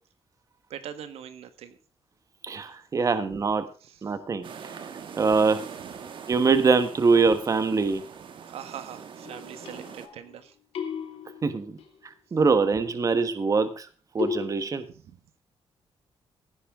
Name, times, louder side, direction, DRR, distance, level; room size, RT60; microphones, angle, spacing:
voice 1, 0.7-1.8 3.8-4.0 8.5-10.5 14.9-15.2, right 9 dB, 85° right, 10 dB, 1.5 m, -42 dB
voice 2, 2.4-3.7 4.0-4.5 5.2-5.6 6.3-8.0 11.4-11.8 12.3-13.9 14.1-14.8, right 4 dB, 35° right, 11 dB, 1.4 m, -23 dB
sound 1, 4.4-10.1, right 7 dB, 55° right, 1.7 m, -43 dB
sound 2, 9.2-10.4 10.7-12.0 14.2-14.5, left 7 dB, 80° left, 2.7 m, -35 dB
16.0 x 9.9 x 3.7 m, 0.37 s
cardioid pair, 135°, 10 cm